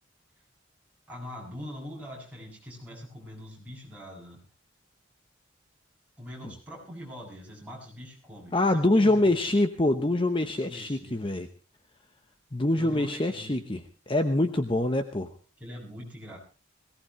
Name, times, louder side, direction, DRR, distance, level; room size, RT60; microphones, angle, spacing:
voice 1, 1.1-4.4 6.2-8.5 8.9-9.5 10.6-11.2 12.7-13.6 15.6-16.4, equal, 5° right, -3 dB, 7.3 m, -43 dB
voice 2, 8.5-11.5 12.5-15.3, left 1 dB, 25° left, 8 dB, 0.9 m, -25 dB
21.5 x 18.0 x 3.1 m, 0.35 s
head